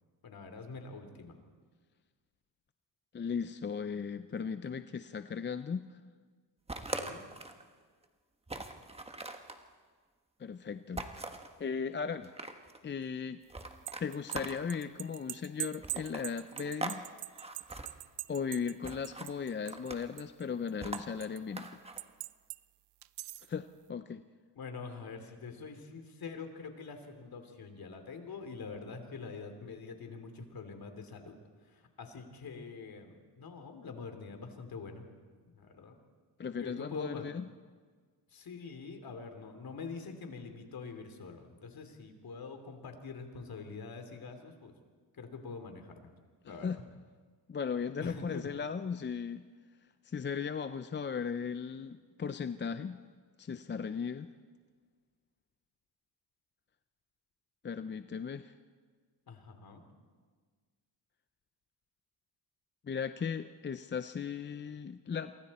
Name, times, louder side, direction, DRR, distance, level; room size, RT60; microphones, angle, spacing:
voice 1, 0.2-1.4 4.6-4.8 6.9-7.2 24.5-31.4 31.6-35.0 35.5-36.0 36.5-37.3 38.3-44.7 45.1-46.1 46.4-46.7 48.0-48.5 59.3-59.8, left 4 dB, 55° left, 6 dB, 3.1 m, -45 dB
voice 2, 3.1-6.0 10.4-11.1 11.6-12.3 12.8-13.4 14.0-17.0 18.3-21.8 23.5-24.2 36.4-37.5 46.5-46.8 47.5-49.5 50.0-53.0 53.4-54.3 57.6-58.5 62.8-65.4, left 6 dB, 25° left, 11 dB, 0.6 m, -37 dB
sound 1, 6.7-7.6 8.0-8.1 8.5-9.6 11.0-11.5 12.1-12.8 13.5-14.9 15.8-17.0 17.3-17.9 18.8-19.3 19.7-20.2 20.8-22.0, right 2 dB, 15° right, 1.5 m, -42 dB
sound 2, 13.6-19.9 20.2-21.4 22.0-22.6 23.0-23.5, right 16 dB, 70° right, 0.6 m, -42 dB
28.0 x 23.5 x 4.3 m, 1.5 s
cardioid pair, 100°, 44 cm